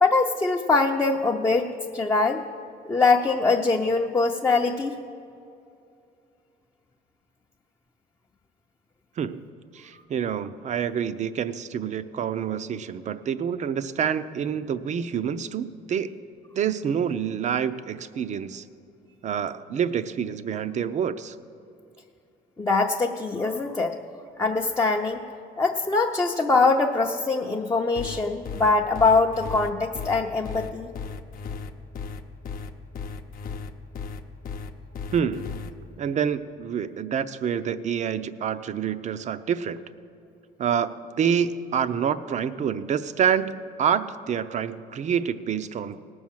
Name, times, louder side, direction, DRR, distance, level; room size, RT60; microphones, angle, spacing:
voice 1, 0.0-2.4 2.9-4.9 9.9-10.0 22.6-23.9 24.4-25.2 25.6-30.9, left 3 dB, 15° left, -1 dB, 0.7 m, -23 dB
voice 2, 9.2-9.5 9.7-16.1 16.5-18.6 19.2-21.3 35.1-35.6 36.0-39.8 40.6-43.5 43.8-46.0, right 8 dB, 45° right, 12 dB, 0.6 m, -27 dB
sound 1, 28.0-35.7, left 5 dB, 55° left, 0.8 m, -35 dB
18.5 x 6.3 x 7.3 m, 2.6 s
cardioid pair, 110°, 17 cm